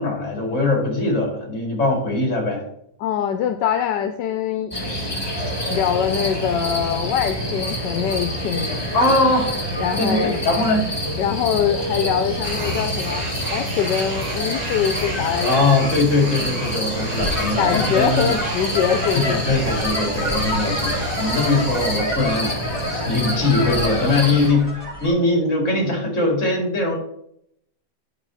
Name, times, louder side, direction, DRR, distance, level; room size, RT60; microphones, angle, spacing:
voice 1, 0.0-2.6 8.9-9.5 10.0-10.9 15.4-18.3 19.1-22.5 23.1-26.9, left 2 dB, 45° left, 1 dB, 2.9 m, -21 dB
voice 2, 3.0-4.7 5.7-8.8 9.8-10.4 11.2-13.2 13.5-15.6 17.6-19.5, left 9 dB, 80° left, 7 dB, 1.3 m, -23 dB
sound 1, 4.7-24.5, equal, 15° left, 1.6 m, -27 dB
sound 2, 12.4-22.0, right 2 dB, 55° right, 2.1 m, -33 dB
sound 3, 17.2-25.1, left 1 dB, 10° right, 3.2 m, -28 dB
10.5 x 5.5 x 4.0 m, 0.73 s
omnidirectional pair, 1.9 m